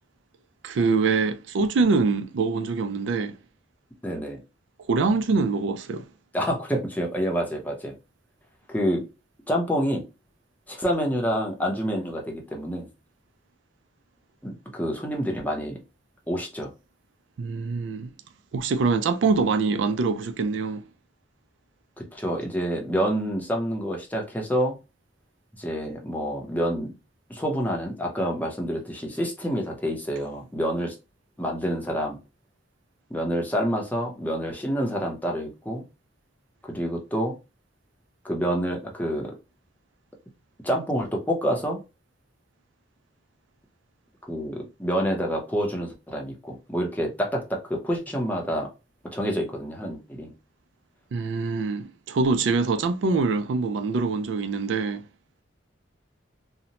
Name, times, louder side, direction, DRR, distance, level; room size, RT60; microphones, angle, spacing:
voice 1, 0.6-3.4 4.9-6.0 17.4-18.1 18.5-20.8 51.1-55.0, right 4 dB, 70° right, 0.4 m, -24 dB
voice 2, 4.0-4.4 6.3-7.9 8.7-9.1 9.5-10.0 10.7-12.9 14.4-15.8 16.3-16.7 22.0-24.7 25.6-26.9 27.3-30.9 31.4-32.2 33.1-35.8 36.7-37.3 38.2-39.3 40.6-41.8 44.3-48.7 49.1-50.3, equal, 10° left, 0.6 m, -27 dB
2.7 x 2.1 x 2.8 m
head